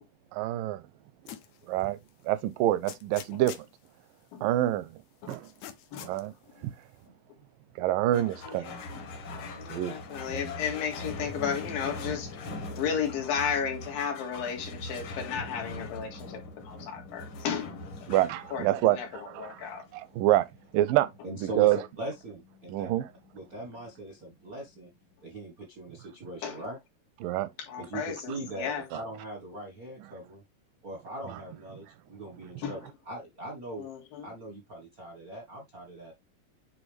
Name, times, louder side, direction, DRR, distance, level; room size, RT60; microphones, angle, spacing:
voice 1, 0.3-0.8 1.7-2.0 2.3-3.6 4.4-5.0 5.3-5.5 6.0-6.3 7.8-8.7 9.7-10.0 18.1-19.7 19.9-20.5 20.7-21.1 21.4-21.8 22.7-23.1 27.2-27.5 28.9-29.0 31.3-31.4, right 14 dB, 85° right, 2.3 m, -26 dB
sound 1, 1.3-1.6 2.1-2.2 2.9-3.7 5.3-6.2, left 11 dB, 70° left, 2.0 m, -44 dB
voice 2, 5.9-6.3 8.5-9.1 9.4-12.3 12.8-17.9 18.5-19.8 26.4-26.6 27.6-28.8 32.6-32.8 33.8-34.3, left 7 dB, 90° left, 3.6 m, -34 dB
sound 2, 8.1-24.9, left 2 dB, 55° left, 1.5 m, -42 dB
voice 3, 21.2-23.0 23.3-24.9 25.2-26.8 27.8-30.4 30.8-33.9 34.2-36.1, right 2 dB, 60° right, 0.9 m, -40 dB
9.0 x 3.9 x 3.3 m
omnidirectional pair, 4.0 m